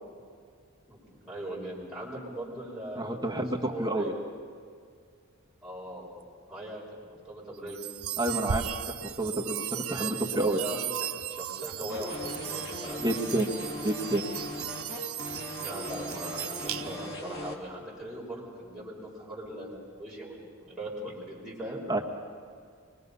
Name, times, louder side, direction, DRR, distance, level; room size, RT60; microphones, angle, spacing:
voice 1, 0.9-4.2 5.6-6.1 6.5-6.8 7.1-7.8 9.9-13.1 15.6-21.8, right 1 dB, 5° right, -6 dB, 5.7 m, -40 dB
voice 2, 2.9-4.0 8.2-8.7 9.0-9.6 9.9-10.6 13.0-13.5 13.8-14.2 21.9-22.0, right 1 dB, 20° right, 1 dB, 1.5 m, -29 dB
sound 1, 7.7-17.2, right 10 dB, 75° right, 0.6 m, -37 dB
sound 2, 11.9-17.5, left 1 dB, 50° left, 2.5 m, -39 dB
25.5 x 22.5 x 5.5 m, 2.1 s
head